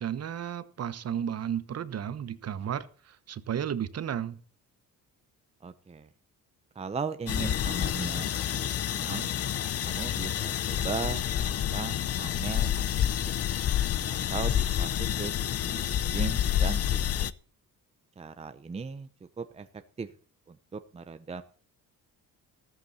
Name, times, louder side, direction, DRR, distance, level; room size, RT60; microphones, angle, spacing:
voice 1, 0.0-4.4, right 9 dB, 45° right, 14 dB, 1.1 m, -33 dB
voice 2, 5.6-6.1 6.7-9.4 9.8-13.3 14.1-17.3 18.2-19.1 19.4-19.7 20.0-20.1 20.5-21.4, right 5 dB, 20° right, 10 dB, 0.7 m, -38 dB
sound 1, 7.3-17.3, left 10 dB, 45° left, 0.6 m, -29 dB
14.0 x 13.5 x 4.1 m, 0.41 s
cardioid pair, 125°, 35 cm